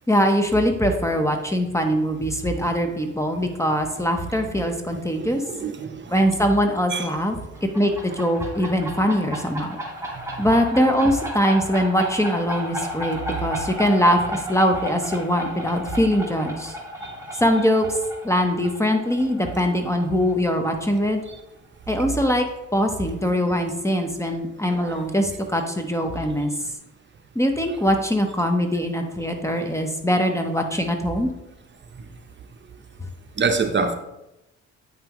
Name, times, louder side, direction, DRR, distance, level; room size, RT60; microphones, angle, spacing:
voice 1, 0.1-5.4 6.1-7.4 7.7-9.8 10.4-16.7 17.4-18.0 18.2-21.2 21.9-26.5 27.3-31.3, equal, 10° left, 5 dB, 0.8 m, -22 dB
voice 2, 4.4-4.7 5.1-6.0 6.9-7.1 17.0-17.1 24.8-25.0 33.4-34.0, right 4 dB, 40° right, 6 dB, 0.8 m, -26 dB
sound 1, 7.5-20.9, equal, 10° right, 1.6 m, -34 dB
8.8 x 5.5 x 3.0 m, 0.92 s
cardioid pair, 90°, 30 cm